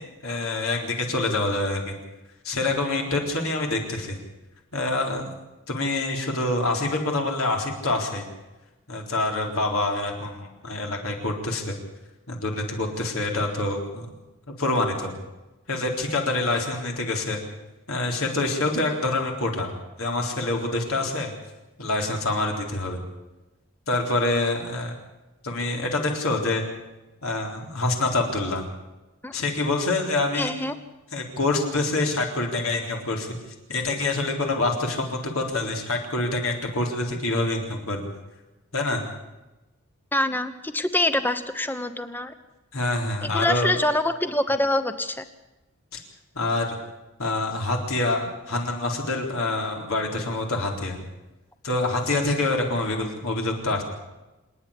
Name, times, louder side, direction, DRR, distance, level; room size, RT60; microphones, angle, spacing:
voice 1, 0.0-2.0 2.4-4.2 4.7-5.3 5.7-8.2 8.9-11.7 12.3-14.1 14.6-15.1 15.7-17.4 17.9-19.7 20.0-21.3 21.8-23.0 23.9-25.0 25.4-26.6 27.2-28.6 29.3-30.6 31.1-33.4 33.7-38.0 38.7-39.1 42.7-43.7 46.3-46.7 47.2-51.0 51.6-53.8, left 2 dB, 75° left, 1 dB, 3.9 m, -26 dB
voice 2, 30.3-30.7 40.1-42.3 43.2-45.2, left 1 dB, 10° left, 10 dB, 1.0 m, -25 dB
26.5 x 9.7 x 10.0 m, 1.1 s
head